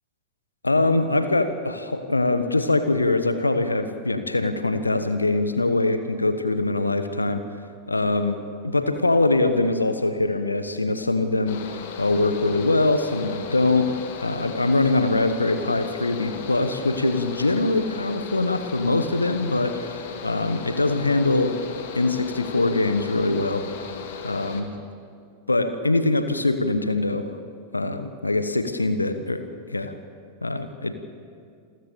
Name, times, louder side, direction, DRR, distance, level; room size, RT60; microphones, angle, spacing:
voice 1, 0.6-7.4 7.9-8.4 8.6-11.6 12.0-21.5 21.9-23.6 24.2-24.7 25.5-27.3 27.7-29.9 30.4-30.9, left 2 dB, 80° left, 10 dB, 1.1 m, -23 dB
Mechanical fan, 11.5-24.6, left 6 dB, 55° left, 2.2 m, -36 dB
28.0 x 15.0 x 6.9 m, 2.2 s
figure-of-eight pair, 90°, 0 cm